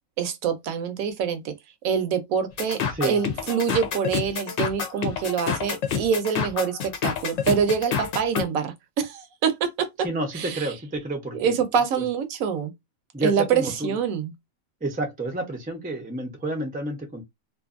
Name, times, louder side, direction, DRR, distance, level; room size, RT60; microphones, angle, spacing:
voice 1, 0.2-1.5 1.8-9.9 10.3-10.7 11.3-12.7 13.2-14.3, right 7 dB, 75° right, 1.0 m, -25 dB
sound 1, 2.6-8.4, left 7 dB, 65° left, 0.9 m, -28 dB
voice 2, 10.0-11.5 12.0-12.1 13.1-14.0 14.8-17.2, right 2 dB, 15° right, 0.3 m, -30 dB
2.6 x 2.5 x 2.4 m
omnidirectional pair, 1.5 m